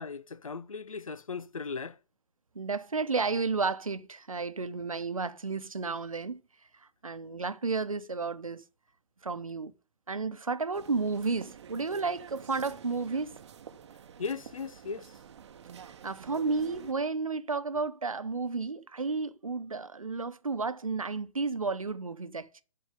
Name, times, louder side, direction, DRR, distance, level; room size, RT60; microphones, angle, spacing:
voice 1, 0.0-2.0 14.2-15.1, left 5 dB, 75° left, 0.7 m, -37 dB
voice 2, 2.5-6.4 6.8-8.6 9.2-9.7 10.1-13.4 15.8-22.6, right 4 dB, 80° right, 0.9 m, -32 dB
sound 1, 10.7-16.9, right 8 dB, 55° right, 0.9 m, -49 dB
11.5 x 4.4 x 6.7 m
figure-of-eight pair, 120°, 17 cm